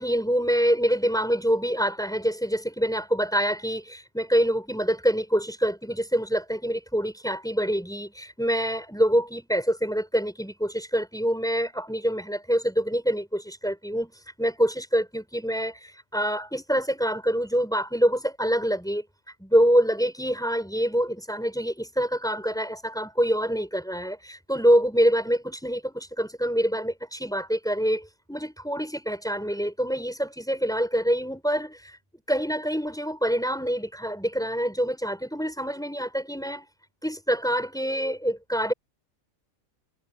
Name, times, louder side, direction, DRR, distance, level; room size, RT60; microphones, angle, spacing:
voice 1, 0.0-19.0 19.4-32.0 32.3-36.6 37.0-38.7, equal, ahead, 6.5 m, -26 dB
omnidirectional pair, 1.5 m